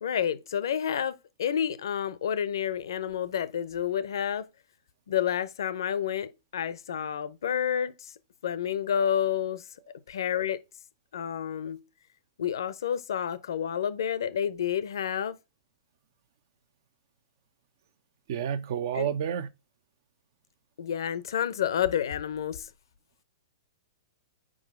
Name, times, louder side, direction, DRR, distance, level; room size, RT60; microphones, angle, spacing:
voice 1, 0.0-4.5 5.1-8.1 8.4-9.7 10.1-10.6 11.1-11.8 12.4-15.4 18.9-19.1 20.8-22.7, left 9 dB, 70° left, 0.6 m, -29 dB
voice 2, 18.3-19.5, right 8 dB, 60° right, 0.7 m, -30 dB
6.2 x 4.9 x 3.6 m
hypercardioid pair, 115°, 2 cm